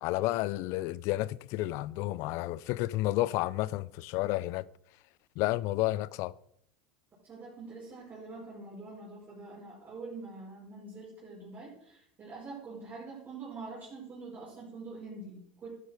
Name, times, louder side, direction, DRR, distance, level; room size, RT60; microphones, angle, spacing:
voice 1, 0.0-4.7 5.4-6.3, left 17 dB, 60° left, 0.5 m, -31 dB
voice 2, 7.2-15.7, right 3 dB, 30° right, 6.6 m, -45 dB
13.0 x 10.0 x 4.9 m
supercardioid pair, 115°, 5 cm